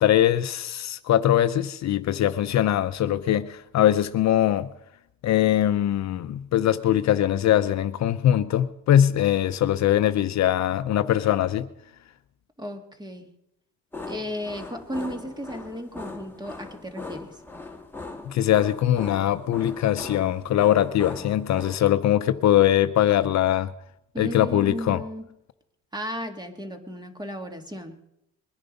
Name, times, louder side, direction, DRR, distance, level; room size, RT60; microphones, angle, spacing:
voice 1, 0.0-4.7 5.2-11.7 18.3-23.7 24.2-25.0, left 11 dB, 55° left, 0.6 m, -22 dB
voice 2, 12.6-13.3 14.1-17.3 24.1-25.2 25.9-28.0, equal, 10° right, 1.8 m, -34 dB
sound 1, 13.9-21.8, left 3 dB, 5° left, 1.5 m, -40 dB
21.5 x 10.5 x 5.3 m
cardioid pair, 125°, 33 cm